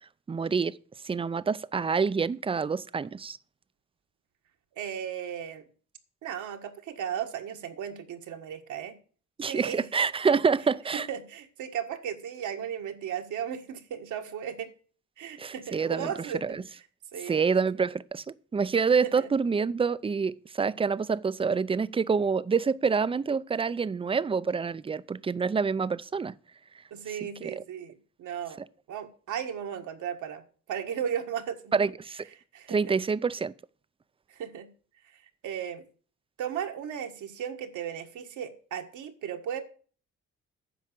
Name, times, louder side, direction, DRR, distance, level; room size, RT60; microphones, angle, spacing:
voice 1, 0.3-0.8 1.0-3.4 9.4-11.1 15.4-16.6 17.3-18.2 18.5-26.3 27.4-27.6 31.7-32.2 32.7-33.5, right 5 dB, 20° right, 0.5 m, -27 dB
voice 2, 4.8-5.7 6.2-9.0 9.4-9.8 10.3-10.4 10.9-14.7 15.2-16.6 17.1-17.4 19.2-19.3 26.9-28.6 28.9-30.4 30.7-31.7 32.5-33.0 34.3-34.7 35.4-35.8 36.4-39.6, right 8 dB, 80° right, 1.6 m, -35 dB
10.0 x 6.0 x 7.5 m
cardioid pair, 90°, 30 cm